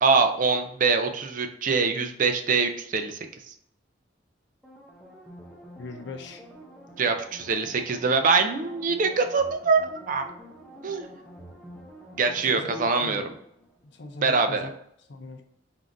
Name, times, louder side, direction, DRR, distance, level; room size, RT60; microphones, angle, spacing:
voice 1, 0.0-3.2 7.0-9.8 10.1-10.3 10.8-11.1 12.2-13.2 14.2-14.7, right 4 dB, 45° right, 7 dB, 0.4 m, -23 dB
sound 1, 4.6-14.0 14.4-14.5, equal, 5° left, 0.6 m, -48 dB
voice 2, 5.8-6.4 12.4-13.4 13.9-14.7 15.1-15.5, left 2 dB, 65° left, 4 dB, 0.6 m, -39 dB
3.6 x 2.5 x 3.8 m, 0.72 s
head